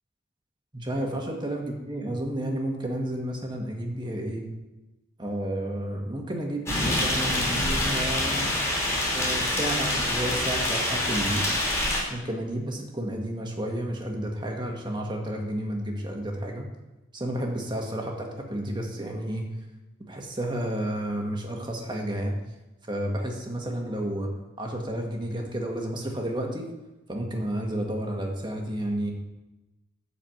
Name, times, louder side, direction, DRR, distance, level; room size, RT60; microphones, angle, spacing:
voice 1, 0.7-4.5 5.2-8.5 9.1-11.5 12.1-16.7 17.1-19.5 20.1-22.4 22.9-24.3 24.6-26.7 27.1-29.1, right 1 dB, 25° right, 1 dB, 1.7 m, -31 dB
sound 1, 6.7-12.0, left 1 dB, 15° left, 3.0 m, -26 dB
12.0 x 5.0 x 7.9 m, 1.0 s
head